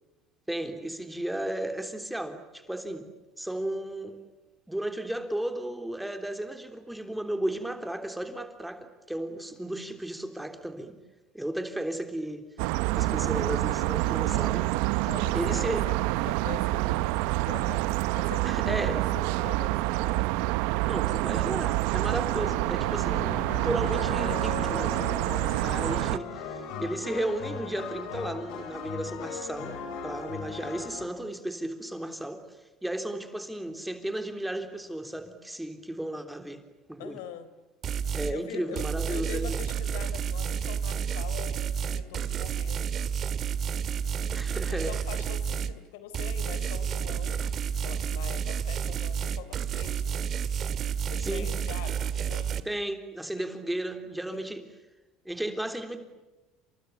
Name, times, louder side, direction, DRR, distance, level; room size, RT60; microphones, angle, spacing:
voice 1, 0.5-3.1 3.4-4.2 4.7-11.0 11.3-12.4 12.9-14.7 15.3-15.8 18.4-19.0 20.9-25.0 25.3-29.8 30.0-32.4 32.8-36.6 36.9-37.2 38.1-39.6 44.3-45.0 51.2-51.5 52.7-54.6 55.3-56.0, right 1 dB, 5° right, 6 dB, 3.5 m, -34 dB
sound 1, 12.6-26.2, right 18 dB, 75° right, 0.9 m, -27 dB
voice 2, 15.0-16.0 16.3-17.1 17.4-17.8 18.2-20.4 25.7-26.1 30.2-30.8 37.0-37.5 38.3-43.1 44.7-47.5 47.8-50.2 51.1-52.5 53.4-53.5 54.3-54.4, left 10 dB, 90° left, 12 dB, 3.9 m, -44 dB
sound 2, 22.3-31.1, left 6 dB, 65° left, 7.2 m, -38 dB
sound 3, 37.8-38.4 38.8-45.8 46.1-52.6, right 7 dB, 35° right, 2.0 m, -30 dB
29.0 x 28.5 x 7.1 m, 1.1 s
cardioid pair, 140°, 0 cm